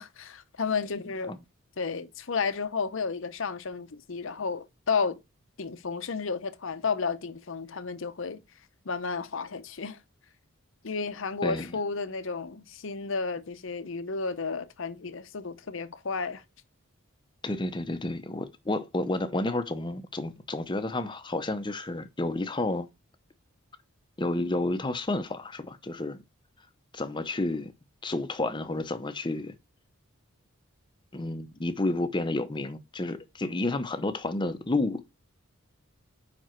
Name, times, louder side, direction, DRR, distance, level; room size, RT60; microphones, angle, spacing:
voice 1, 0.0-1.4 1.8-5.2 5.6-8.4 8.8-10.0 10.8-16.4, left 5 dB, 60° left, 0.7 m, -32 dB
voice 2, 11.4-11.7 17.4-22.9 24.2-26.2 26.9-27.7 28.0-29.6 31.1-35.0, left 2 dB, 20° left, 0.6 m, -30 dB
5.2 x 4.7 x 4.4 m
head